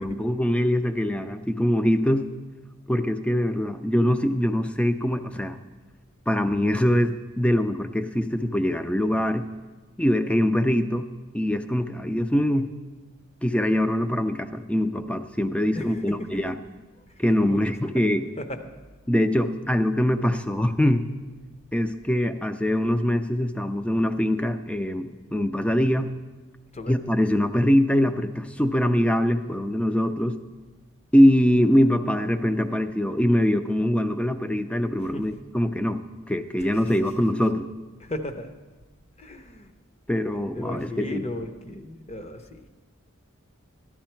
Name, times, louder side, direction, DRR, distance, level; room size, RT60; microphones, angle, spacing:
voice 1, 0.0-2.3 2.9-5.6 6.3-9.4 10.0-11.0 11.3-12.7 13.4-16.5 17.2-18.3 19.1-21.1 21.7-26.1 26.9-30.4 31.1-37.7 40.1-41.2, equal, 5° left, 9 dB, 0.4 m, -23 dB
voice 2, 38.0-38.5 39.2-39.7 40.5-42.7, left 1 dB, 30° left, 8 dB, 0.8 m, -36 dB
14.0 x 11.5 x 4.4 m, 1.2 s
head